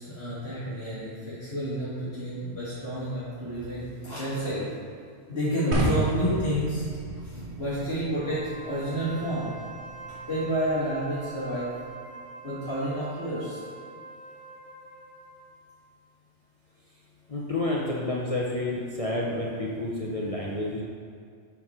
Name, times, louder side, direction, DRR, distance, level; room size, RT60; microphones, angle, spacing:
voice 1, 0.0-4.7 5.3-6.9 7.2-9.5 10.3-11.7 12.4-13.6, equal, 60° left, -13 dB, 2.2 m, -30 dB
sound 1, 5.7-11.8, right 1 dB, 70° right, 1.3 m, -33 dB
Wind instrument woodwind instrument, 8.1-15.6, right 4 dB, 10° left, 0.4 m, -44 dB
voice 2, 17.3-20.8, left 2 dB, 35° left, -4 dB, 0.7 m, -29 dB
6.4 x 5.9 x 4.3 m, 2.3 s
omnidirectional pair, 1.2 m